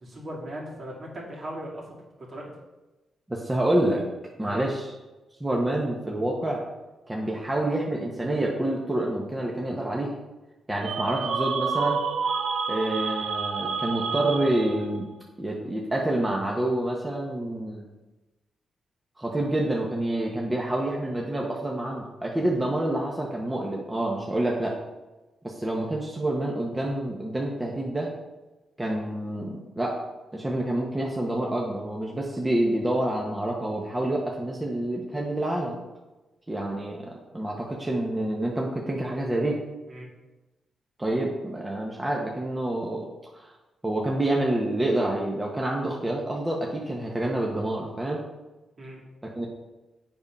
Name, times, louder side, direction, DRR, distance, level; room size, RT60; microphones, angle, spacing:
voice 1, 0.0-1.8 2.2-2.5 4.4-4.6 39.9-40.1 48.8-49.0, right 1 dB, 50° right, -3 dB, 2.7 m, -38 dB
voice 2, 3.3-4.0 4.4-4.9 5.4-6.6 7.1-10.2 10.7-12.0 12.7-15.1 15.4-17.9 19.2-24.8 25.4-28.1 28.8-30.0 30.3-35.8 36.5-39.6 41.0-43.1 43.3-43.5 43.8-48.2 49.2-49.5, right 1 dB, 15° right, -2 dB, 1.2 m, -27 dB
sound 1, 10.8-15.0, right 5 dB, 70° right, 0.8 m, -29 dB
7.9 x 5.6 x 5.4 m, 1.1 s
cardioid pair, 100°, 0 cm